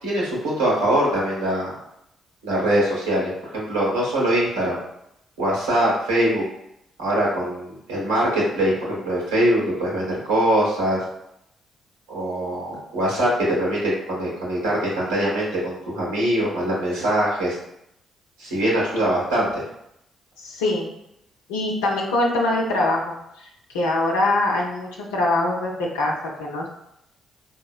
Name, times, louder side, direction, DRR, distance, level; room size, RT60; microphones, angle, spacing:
voice 1, 0.0-1.7 2.4-4.8 5.4-6.5 7.0-11.0 12.1-17.6 18.4-19.6, right 1 dB, 85° right, -4 dB, 1.0 m, -22 dB
voice 2, 20.4-20.9 21.5-23.5 23.7-26.7, left 2 dB, 85° left, -3 dB, 0.5 m, -23 dB
3.9 x 2.8 x 2.3 m, 0.79 s
hypercardioid pair, 45°, 0 cm